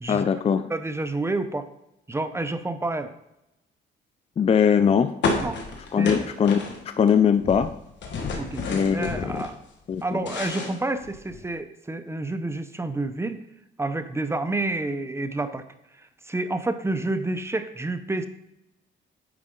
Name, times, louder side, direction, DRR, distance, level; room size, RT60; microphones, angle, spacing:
voice 1, 0.1-0.7 4.4-5.1 5.9-7.7 8.7-9.5 9.9-10.2, left 7 dB, 30° left, 11 dB, 0.4 m, -21 dB
voice 2, 0.7-1.7 2.1-3.1 5.4-5.6 6.0-6.1 8.4-8.6 8.9-9.6 10.0-13.4 13.8-15.6 16.0-18.3, right 2 dB, 15° right, 10 dB, 0.7 m, -29 dB
sound 1, 5.2-7.1 7.4-9.5 9.9-11.5, left 4 dB, 65° left, 1.6 m, -30 dB
9.6 x 4.9 x 3.8 m, 0.86 s
cardioid pair, 90°, 20 cm